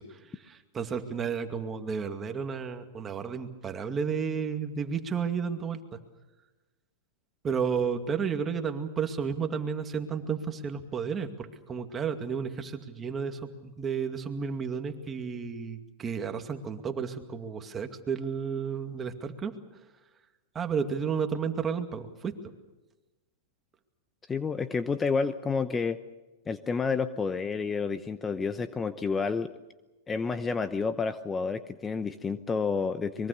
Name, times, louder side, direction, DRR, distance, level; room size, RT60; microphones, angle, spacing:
voice 1, 0.0-6.0 7.4-19.5 20.5-22.3, right 6 dB, 20° right, 6 dB, 2.3 m, -32 dB
voice 2, 24.3-26.0 26.5-29.5 30.1-33.3, left 5 dB, 15° left, 11 dB, 0.9 m, -30 dB
24.5 x 22.5 x 6.7 m, 1.1 s
hypercardioid pair, 120°, 0 cm